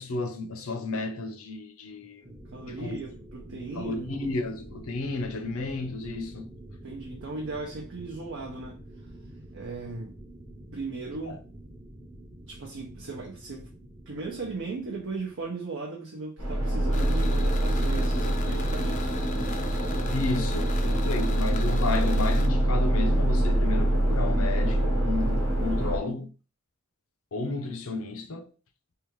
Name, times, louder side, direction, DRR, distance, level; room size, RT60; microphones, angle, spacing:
voice 1, 0.0-2.4 2.6-3.0 3.8-6.5 11.3-11.4 20.1-26.3 27.3-28.5, left 3 dB, 70° left, 0.6 m, -32 dB
sound 1, 2.2-15.6, right 1 dB, 20° right, 0.8 m, -47 dB
voice 2, 2.5-4.1 6.8-8.8 9.5-10.2 10.7-11.4 12.4-13.7 14.1-19.2, right 3 dB, 60° right, 0.7 m, -37 dB
sound 2, 16.4-26.0, right 1 dB, 85° right, 1.2 m, -25 dB
sound 3, 16.9-22.5, left 6 dB, 35° left, 0.4 m, -43 dB
3.4 x 2.4 x 3.0 m
head